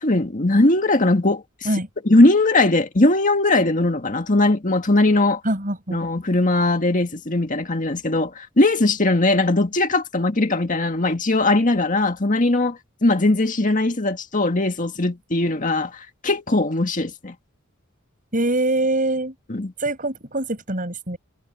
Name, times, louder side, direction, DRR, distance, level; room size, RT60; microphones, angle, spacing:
voice 1, 0.0-1.4 2.1-5.4 5.9-17.3 19.5-19.7, left 2 dB, 40° left, 1.9 m, -19 dB
voice 2, 5.4-6.0 18.3-19.3 19.8-21.2, right 2 dB, 40° right, 6.9 m, -23 dB
head